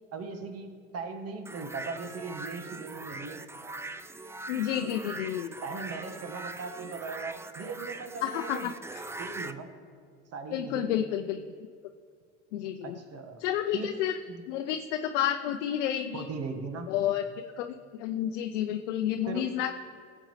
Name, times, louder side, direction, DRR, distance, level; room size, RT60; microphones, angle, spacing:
voice 1, 0.1-3.4 4.8-4.9 5.6-8.7 9.2-9.7 10.3-11.0 12.8-13.4 13.7-13.9 14.3-14.4 16.1-16.9 19.3-19.5, right 4 dB, 40° right, 6 dB, 1.6 m, -39 dB
sound 1, 1.5-9.5, right 2 dB, 5° right, 0.4 m, -41 dB
voice 2, 4.5-5.5 8.2-9.0 10.5-11.4 12.5-13.0 13.4-14.1 14.5-16.2 16.9-17.2 17.6-17.7 17.9-19.7, left 10 dB, 70° left, 5 dB, 0.6 m, -30 dB
18.5 x 7.8 x 3.3 m, 2.1 s
hypercardioid pair, 70°, 37 cm